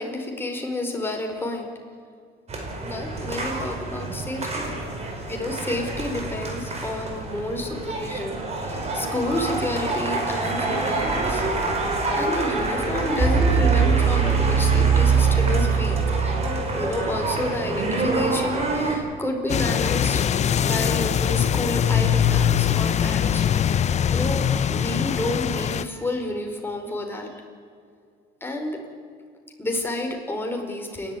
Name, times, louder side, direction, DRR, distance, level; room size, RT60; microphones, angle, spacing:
voice 1, 0.0-1.8 2.8-4.7 5.3-11.4 12.1-16.0 16.8-20.2 20.6-23.5 24.1-27.4 28.4-28.9 29.6-31.2, left 1 dB, 15° left, 2 dB, 4.6 m, -30 dB
sound 1, 2.5-19.0, right 4 dB, 40° right, 5.0 m, -24 dB
sound 2, 19.5-25.8, left 8 dB, 40° left, 0.7 m, -22 dB
28.5 x 12.0 x 9.3 m, 2.2 s
cardioid pair, 110°, 17 cm